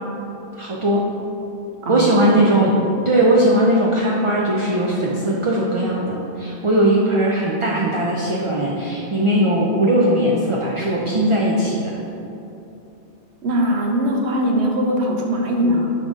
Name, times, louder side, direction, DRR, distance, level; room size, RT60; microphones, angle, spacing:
voice 1, 0.6-1.0 1.9-2.8 3.0-12.0, right 1 dB, 40° right, -4 dB, 0.5 m, -19 dB
voice 2, 1.8-2.5 13.4-15.9, equal, 90° right, 1 dB, 1.0 m, -21 dB
6.8 x 3.9 x 3.6 m, 2.9 s
omnidirectional pair, 1.1 m